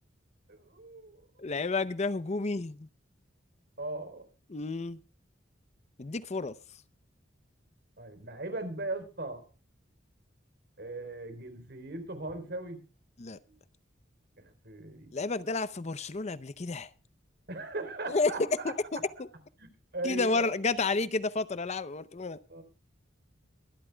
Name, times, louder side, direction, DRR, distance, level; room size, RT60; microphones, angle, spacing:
voice 1, 0.5-1.3 3.8-4.2 8.0-9.4 10.8-12.8 14.3-15.1 17.5-18.7 19.6-20.5 22.5-22.6, right 2 dB, 60° right, 3.8 m, -39 dB
voice 2, 1.4-2.9 4.5-5.0 6.0-6.5 13.2-13.4 15.1-16.9 18.1-18.3 18.6-19.3 20.0-22.4, left 3 dB, 35° left, 0.6 m, -31 dB
23.5 x 12.5 x 2.3 m
head